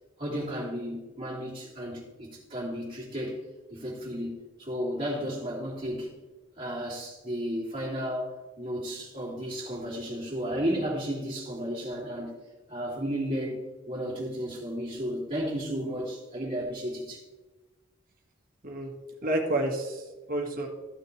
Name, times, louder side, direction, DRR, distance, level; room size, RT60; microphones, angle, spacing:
voice 1, 0.2-3.4 3.7-6.1 6.6-8.3 8.6-12.3 12.7-13.6 13.9-17.2, equal, 25° right, -8 dB, 2.8 m, -33 dB
voice 2, 19.2-20.7, right 1 dB, 50° right, 1 dB, 1.8 m, -29 dB
14.0 x 6.5 x 3.3 m, 1.2 s
head